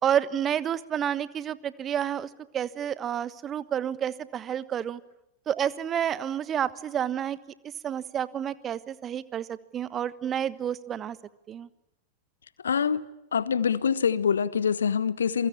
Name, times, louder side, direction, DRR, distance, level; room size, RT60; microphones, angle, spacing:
voice 1, 0.0-5.0 5.5-7.4 7.6-11.2 11.5-11.7, right 9 dB, 25° right, 16 dB, 1.3 m, -30 dB
voice 2, 12.6-13.0 13.3-15.5, left 7 dB, 70° left, 16 dB, 1.2 m, -25 dB
28.0 x 23.5 x 8.7 m, 0.83 s
figure-of-eight pair, 90°, 0 cm